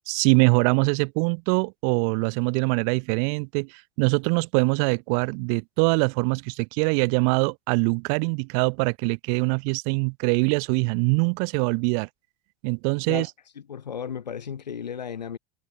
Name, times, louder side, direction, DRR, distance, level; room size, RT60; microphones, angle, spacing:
voice 1, 0.1-12.1 12.6-13.3, right 40 dB or more, 55° right, 3.9 m, -23 dB
voice 2, 13.6-15.4, left 7 dB, 80° left, 7.6 m, -34 dB
figure-of-eight pair, 80°, 21 cm